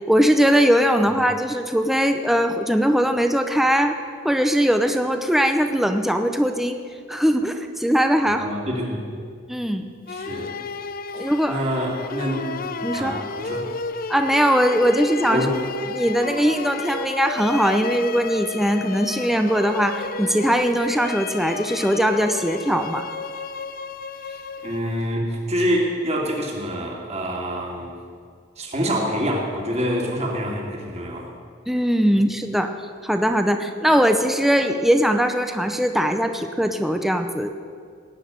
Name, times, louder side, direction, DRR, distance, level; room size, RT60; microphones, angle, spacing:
voice 1, 0.1-3.9 4.2-6.8 7.1-8.4 9.5-9.8 11.1-11.6 12.8-13.2 14.1-15.4 15.9-23.0 31.7-32.7 33.0-37.5, equal, ahead, 6 dB, 0.6 m, -20 dB
voice 2, 8.3-9.2 10.1-10.5 11.2-12.5 12.9-13.7 15.3-15.7 24.2-28.0 28.6-31.3 32.1-32.2, equal, 35° right, -1 dB, 2.6 m, -26 dB
sound 1, 10.1-25.1, left 4 dB, 50° left, 0.5 m, -32 dB
18.5 x 6.4 x 9.3 m, 2.1 s
head